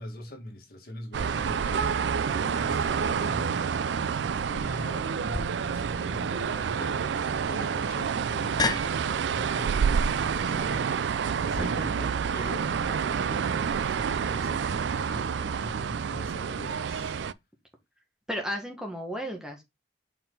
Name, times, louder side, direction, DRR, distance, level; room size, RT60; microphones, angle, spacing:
voice 1, 0.0-17.2, left 1 dB, 60° left, 1.6 m, -43 dB
sound 1, 1.1-17.3, right 6 dB, 90° right, 0.4 m, -28 dB
sound 2, 5.3-11.6, left 3 dB, 25° left, 0.6 m, -36 dB
voice 2, 11.6-11.9 18.3-19.6, equal, 5° right, 1.5 m, -34 dB
5.6 x 4.6 x 3.8 m
head